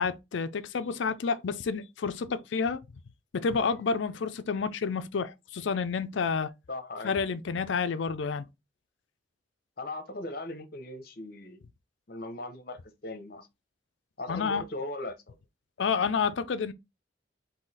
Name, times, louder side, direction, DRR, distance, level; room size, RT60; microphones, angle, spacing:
voice 1, 0.0-2.8 3.3-6.5 7.0-8.5 14.3-14.6 15.8-16.7, left 5 dB, 70° left, 0.4 m, -29 dB
voice 2, 6.7-7.2 9.8-11.6 12.1-13.5 14.2-15.3, left 2 dB, 50° left, 0.8 m, -38 dB
3.8 x 2.7 x 4.0 m
head